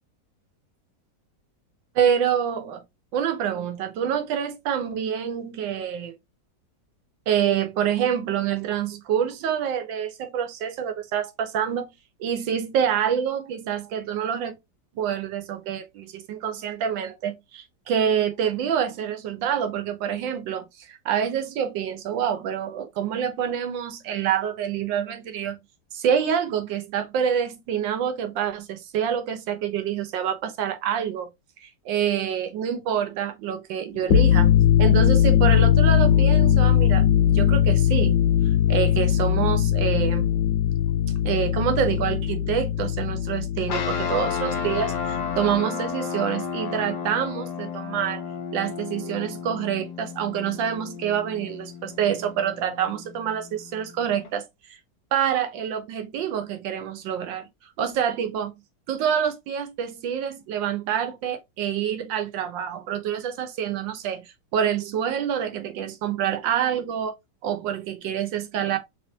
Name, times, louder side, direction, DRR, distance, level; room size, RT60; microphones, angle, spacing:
voice 1, 1.9-2.8 3.1-6.1 7.3-11.9 12.2-14.6 14.9-25.6 25.9-31.3 31.6-37.1 37.3-38.2 38.7-40.3 41.2-48.2 48.5-54.5 55.1-57.5 57.8-58.5 58.9-67.1 67.4-68.8, right 9 dB, 85° right, 1.5 m, -27 dB
sound 1, 34.0-45.5, left 10 dB, 85° left, 1.3 m, -20 dB
sound 2, 43.7-54.4, left 6 dB, 70° left, 1.2 m, -33 dB
3.4 x 3.4 x 2.7 m
omnidirectional pair, 2.0 m